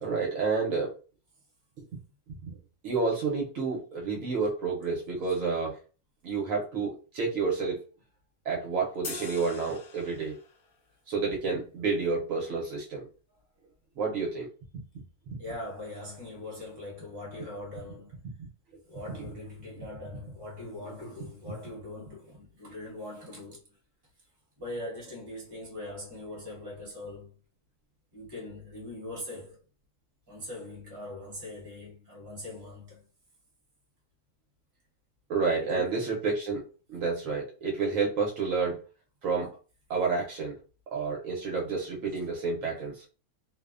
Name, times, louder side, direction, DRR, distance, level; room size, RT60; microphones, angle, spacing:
voice 1, 0.0-1.0 2.3-2.6 2.8-5.8 6.2-7.8 8.4-10.4 11.1-13.1 14.0-14.5 14.7-14.8 15.3-15.4 19.1-19.2 35.3-36.6 36.9-38.8 39.2-39.5 39.9-40.6 40.9-43.0, right 4 dB, 70° right, 0.9 m, -30 dB
sound 1, 9.0-10.7, left 5 dB, 70° left, 1.0 m, -42 dB
voice 2, 15.4-18.2 18.9-23.8 24.6-27.4 28.1-29.6 30.3-33.0 35.6-36.2, left 1 dB, 20° right, 1.0 m, -41 dB
2.6 x 2.0 x 2.4 m
omnidirectional pair, 1.6 m